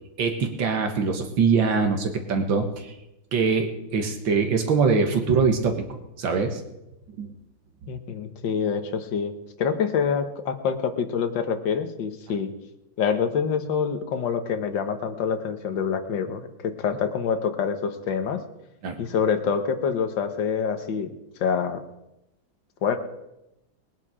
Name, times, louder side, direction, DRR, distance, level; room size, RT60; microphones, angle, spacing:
voice 1, 0.2-2.9 3.3-5.8 6.2-6.6 7.2-7.3 18.8-19.0, right 5 dB, 75° right, 5 dB, 2.3 m, -23 dB
voice 2, 7.9-12.5 13.0-18.4 19.0-21.1 21.4-21.8 22.8-23.0, left 6 dB, 70° left, 7 dB, 1.9 m, -26 dB
19.5 x 10.5 x 5.0 m, 0.92 s
omnidirectional pair, 2.1 m